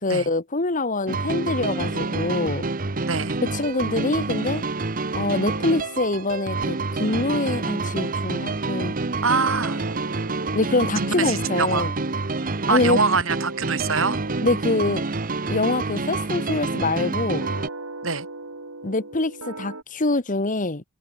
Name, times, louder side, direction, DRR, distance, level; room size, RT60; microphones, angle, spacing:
voice 1, 0.0-2.7 3.5-4.6 5.1-8.9 10.5-11.9 12.7-13.0 14.4-15.0 15.5-17.4 18.8-20.8, left 2 dB, 40° left, 1.5 m, -24 dB
sound 1, 1.1-17.7, right 3 dB, 45° right, 1.1 m, -27 dB
voice 2, 3.0-3.4 9.2-9.8 11.0-11.9 12.7-14.2 18.0-18.3, right 4 dB, 70° right, 6.3 m, -24 dB
sound 2, 4.9-5.1 5.4-19.8, right 2 dB, 85° right, 5.0 m, -42 dB
head